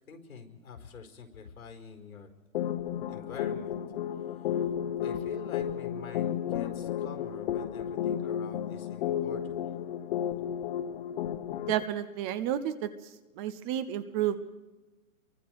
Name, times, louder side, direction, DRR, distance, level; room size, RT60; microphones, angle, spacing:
voice 1, 0.1-2.3 3.1-3.8 4.4-4.5 5.0-9.7, left 5 dB, 85° left, 4 dB, 4.8 m, -47 dB
sound 1, 2.5-11.8, left 9 dB, 40° left, 1.0 m, -33 dB
voice 2, 11.7-14.4, right 11 dB, 20° right, 13 dB, 0.6 m, -31 dB
28.5 x 23.5 x 4.8 m, 1.2 s
hypercardioid pair, 145°, 42 cm